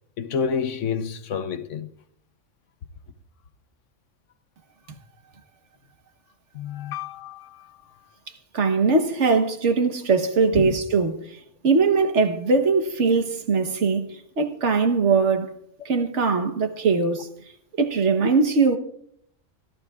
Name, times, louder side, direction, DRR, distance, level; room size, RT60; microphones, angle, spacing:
voice 1, 0.2-1.9 6.5-7.7 10.6-10.7, left 6 dB, 70° left, 1.1 m, -29 dB
voice 2, 8.5-11.4 11.6-15.5 15.8-17.3 17.8-18.8, right 4 dB, 65° right, 1.4 m, -21 dB
25.5 x 12.0 x 2.4 m
omnidirectional pair, 1.3 m